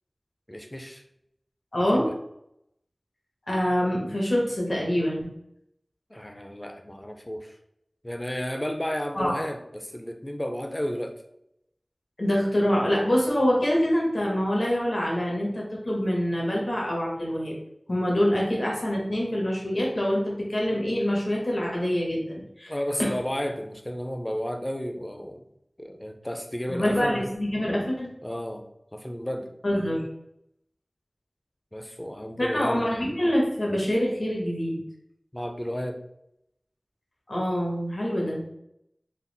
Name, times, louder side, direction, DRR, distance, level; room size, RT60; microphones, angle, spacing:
voice 1, 0.5-1.0 1.9-2.1 6.1-7.6 8.0-11.2 22.7-25.4 25.8-27.2 28.2-28.6 28.9-29.5 31.7-32.8 35.3-36.0, equal, 25° left, 4 dB, 0.6 m, -32 dB
voice 2, 1.7-2.1 3.5-5.3 9.1-9.4 12.2-17.5 17.9-22.7 23.0-23.1 26.7-28.1 29.6-30.0 32.4-34.8 37.3-38.4, equal, 60° left, -3 dB, 1.2 m, -25 dB
4.1 x 2.0 x 3.9 m, 0.79 s
wide cardioid pair, 45°, 0 cm